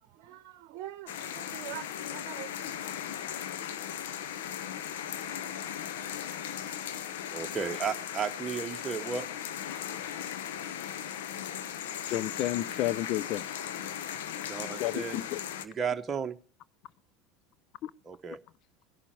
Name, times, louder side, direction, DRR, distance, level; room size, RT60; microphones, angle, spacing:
voice 1, 0.0-2.5, right 14 dB, 60° right, 0.8 m, -44 dB
sound 1, 1.1-15.7, left 9 dB, 70° left, 1.0 m, -37 dB
voice 2, 7.3-9.2 14.5-15.2 15.6-16.4 18.1-18.4, right 6 dB, 30° right, 1.0 m, -34 dB
voice 3, 12.1-13.5 14.8-15.4, left 14 dB, 55° left, 0.5 m, -31 dB
19.0 x 11.5 x 4.6 m
hypercardioid pair, 80°, 0 cm